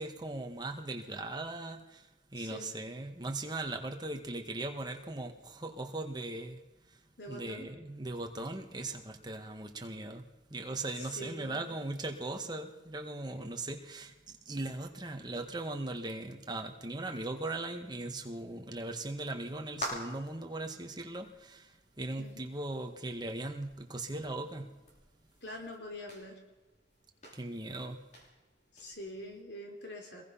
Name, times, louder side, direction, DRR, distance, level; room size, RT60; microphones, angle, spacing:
voice 1, 0.0-7.0 7.3-24.7 27.3-28.0, right 2 dB, 20° right, 4 dB, 1.7 m, -39 dB
voice 2, 2.4-2.7 7.2-7.7 11.0-11.8 22.2-22.5 25.4-26.4 28.7-30.2, left 1 dB, 60° left, 2 dB, 3.7 m, -45 dB
sound 1, 19.3-29.4, left 1 dB, 40° left, 6.1 m, -49 dB
24.5 x 21.5 x 5.8 m, 1.1 s
head